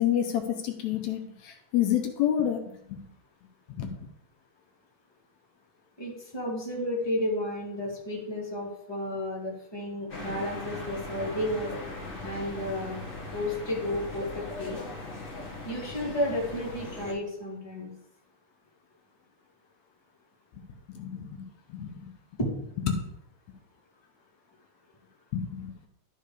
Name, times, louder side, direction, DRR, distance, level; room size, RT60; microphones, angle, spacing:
voice 1, 0.0-2.6 2.9-3.0 3.8-3.9 21.0-21.4 21.7-22.1 22.9-23.0 25.3-25.9, left 10 dB, 75° left, 4 dB, 2.1 m, -28 dB
voice 2, 6.0-11.7 12.2-13.0 13.3-14.8 15.6-17.9 22.4-22.5, left 1 dB, 10° left, -4 dB, 2.0 m, -32 dB
sound 1, 10.1-17.1, left 2 dB, 25° left, 1.2 m, -39 dB
12.0 x 4.2 x 4.9 m, 0.73 s
omnidirectional pair, 3.3 m